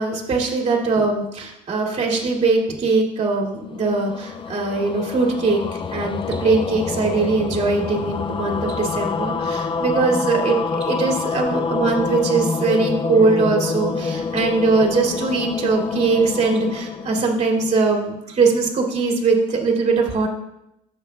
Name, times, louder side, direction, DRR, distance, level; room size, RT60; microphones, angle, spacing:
voice 1, 0.0-20.3, right 3 dB, 40° right, -1 dB, 2.4 m, -21 dB
sound 1, 3.6-18.0, left 5 dB, 30° left, 0.5 m, -27 dB
12.5 x 7.7 x 2.3 m, 0.83 s
cardioid pair, 110°, 17 cm